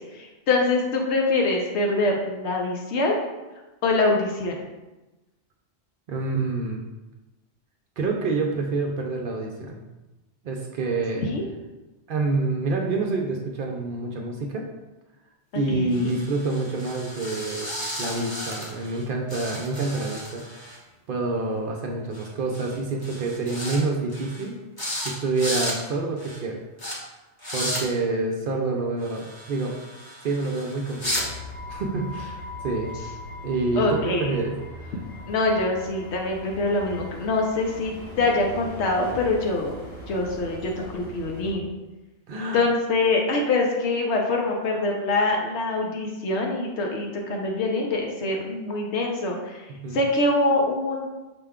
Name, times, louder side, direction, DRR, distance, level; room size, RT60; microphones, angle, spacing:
voice 1, 0.0-3.3 3.8-4.6 11.2-11.4 15.7-16.1 33.7-34.3 35.3-39.7 40.1-41.7 42.5-49.7 49.9-51.1, left 2 dB, 80° left, 1 dB, 1.0 m, -24 dB
voice 2, 6.1-6.8 8.0-9.8 10.4-11.3 12.1-14.7 15.5-17.7 18.0-20.7 21.1-24.6 25.0-26.6 27.5-29.8 30.2-31.3 31.7-32.9 33.4-35.0 42.3-42.6 49.7-50.0, right 3 dB, 60° right, 1 dB, 0.6 m, -27 dB
sound 1, 15.9-19.0 19.3-20.8 22.1-22.3 22.5-22.8 23.0-23.8 24.1-24.5 24.8-25.1 25.3-25.8 26.2-26.4 26.8-26.9 27.4-27.8 29.0-31.2, left 1 dB, 20° left, 0.8 m, -34 dB
sound 2, 31.0-41.5, left 1 dB, 40° left, 1.5 m, -39 dB
5.9 x 2.2 x 3.5 m, 1.1 s
omnidirectional pair, 1.2 m